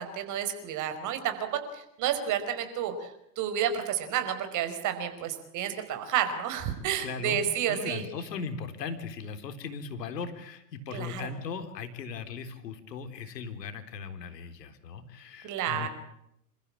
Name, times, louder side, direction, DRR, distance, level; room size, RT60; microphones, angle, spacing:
voice 1, 0.0-3.1 3.4-8.1 10.9-11.3 15.4-15.9, right 9 dB, 40° right, 8 dB, 5.0 m, -30 dB
voice 2, 7.0-7.4 7.7-15.9, left 5 dB, 80° left, 9 dB, 4.0 m, -38 dB
28.5 x 15.0 x 8.7 m, 0.78 s
hypercardioid pair, 125°, 48 cm